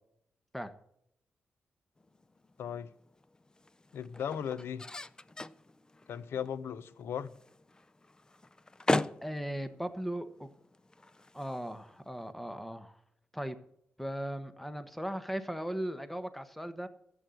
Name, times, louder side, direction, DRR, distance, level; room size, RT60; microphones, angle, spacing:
sound 1, 2.0-12.3, left 2 dB, 20° left, 0.5 m, -40 dB
voice 1, 2.6-2.9 3.9-4.8 6.1-7.3, left 8 dB, 85° left, 0.7 m, -37 dB
voice 2, 9.2-10.5 11.3-13.0 13.3-13.6 14.0-16.9, equal, 5° left, 1.3 m, -38 dB
13.5 x 8.5 x 7.8 m
cardioid pair, 100°, 4 cm